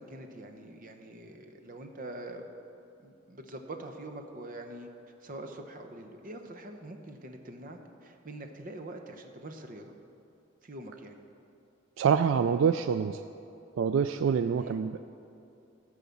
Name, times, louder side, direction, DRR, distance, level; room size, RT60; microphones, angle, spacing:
voice 1, 0.0-2.4 3.0-4.9 5.2-9.9 10.6-11.2 14.5-14.8, right 1 dB, 45° right, 5 dB, 0.9 m, -44 dB
voice 2, 12.0-13.2 13.8-15.0, right 7 dB, 75° right, 10 dB, 0.3 m, -26 dB
14.5 x 4.9 x 7.0 m, 2.7 s
head